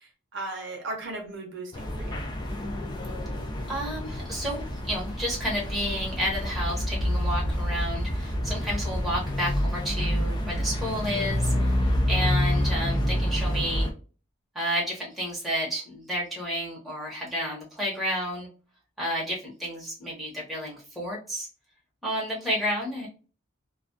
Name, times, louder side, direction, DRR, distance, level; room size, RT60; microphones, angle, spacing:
voice 1, 0.0-2.3, right 2 dB, 55° right, 0.7 m, -37 dB
sound 1, 1.7-13.9, equal, 20° left, 0.3 m, -28 dB
voice 2, 3.7-11.7 12.1-13.9 14.5-18.5 19.0-21.5 22.0-23.1, equal, ahead, 0.8 m, -31 dB
2.3 x 2.2 x 2.5 m
head